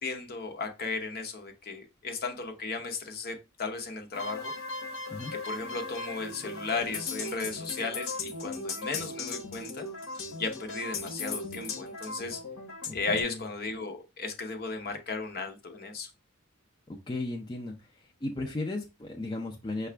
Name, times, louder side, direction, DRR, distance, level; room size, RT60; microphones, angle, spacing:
voice 1, 0.0-4.5 5.4-9.8 10.4-12.4 12.9-16.1, left 4 dB, 45° left, 0.8 m, -35 dB
sound 1, 4.1-13.2, left 3 dB, 75° left, 0.8 m, -38 dB
voice 2, 12.9-13.5 17.1-17.8 18.2-19.9, left 2 dB, 20° left, 0.4 m, -35 dB
5.7 x 2.3 x 3.3 m
head